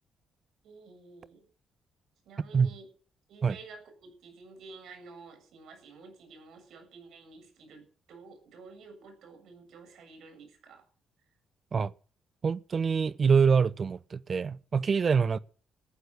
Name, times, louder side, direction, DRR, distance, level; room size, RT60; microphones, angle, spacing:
voice 1, 0.6-1.5 2.3-2.9 3.3-10.8, right 4 dB, 75° right, 7.6 m, -51 dB
voice 2, 12.4-15.4, right 5 dB, 40° right, 0.6 m, -25 dB
14.5 x 10.5 x 6.6 m
cardioid pair, 90°, 0 cm